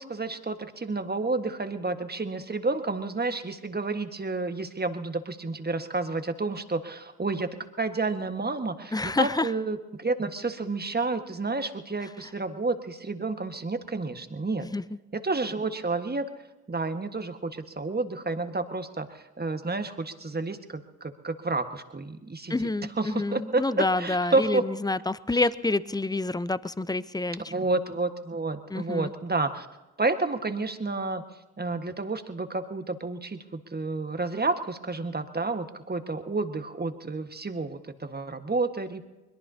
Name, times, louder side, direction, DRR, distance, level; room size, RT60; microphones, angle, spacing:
voice 1, 0.0-7.5 7.8-14.7 15.1-16.2 16.7-22.7 23.0-24.6 25.3-25.4 27.5-29.7 30.0-31.2 31.6-39.0, right 3 dB, 25° right, 8 dB, 1.5 m, -30 dB
voice 2, 8.9-9.5 14.7-14.8 22.5-27.5 28.7-29.1, left 2 dB, 10° left, 17 dB, 0.6 m, -28 dB
22.0 x 21.5 x 2.8 m, 1.1 s
hypercardioid pair, 45°, 39 cm